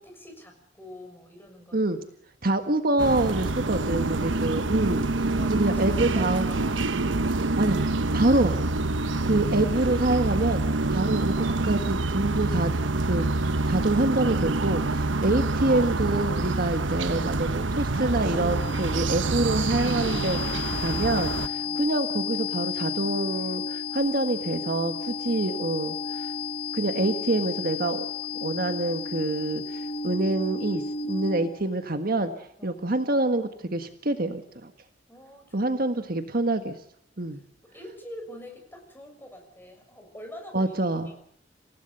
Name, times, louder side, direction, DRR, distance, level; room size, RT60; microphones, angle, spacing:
voice 1, 0.0-1.9 3.7-4.1 5.4-7.2 8.9-9.5 21.6-21.9 32.6-32.9 35.1-35.7 37.3-40.8 41.1-41.2, left 1 dB, 10° left, 3 dB, 6.8 m, -46 dB
voice 2, 2.4-6.5 7.6-8.6 9.2-10.6 10.9-12.7 13.0-26.3 26.7-28.1 28.4-30.8 31.1-32.3 32.6-34.7 35.5-36.8 37.2-37.4 40.5-41.1, right 2 dB, 50° right, 7 dB, 1.6 m, -26 dB
sound 1, 3.0-21.5, right 2 dB, 75° right, 1.1 m, -26 dB
sound 2, 17.8-31.7, left 5 dB, 35° left, 1.6 m, -33 dB
28.5 x 17.5 x 6.9 m, 0.71 s
head